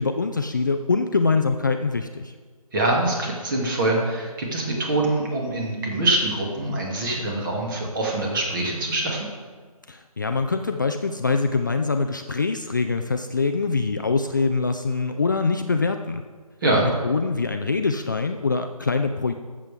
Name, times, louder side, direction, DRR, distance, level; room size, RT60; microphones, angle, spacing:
voice 1, 0.0-2.3 9.9-16.2 16.8-19.3, left 4 dB, 30° left, 6 dB, 0.4 m, -24 dB
voice 2, 2.7-9.3 16.6-16.9, right 2 dB, 35° right, -1 dB, 2.5 m, -24 dB
18.5 x 7.5 x 3.6 m, 1.5 s
figure-of-eight pair, 160°, 19 cm